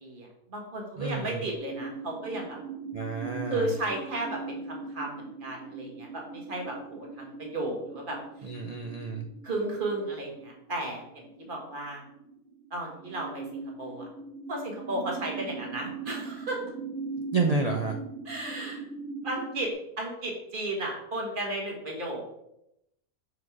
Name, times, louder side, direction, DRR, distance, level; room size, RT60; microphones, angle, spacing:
voice 1, 0.0-2.6 3.4-8.6 9.4-12.0 12.7-13.4 13.8-14.1 14.5-16.6 18.2-18.8 19.2-19.7 20.0-22.2, right 1 dB, 35° right, -1 dB, 1.7 m, -34 dB
voice 2, 1.0-1.5 2.9-3.7 8.4-9.3 17.3-18.0, right 4 dB, 90° right, 3 dB, 0.3 m, -30 dB
sound 1, 1.5-19.7, right 4 dB, 65° right, 1.7 m, -41 dB
6.1 x 4.8 x 4.7 m, 0.81 s
omnidirectional pair, 1.5 m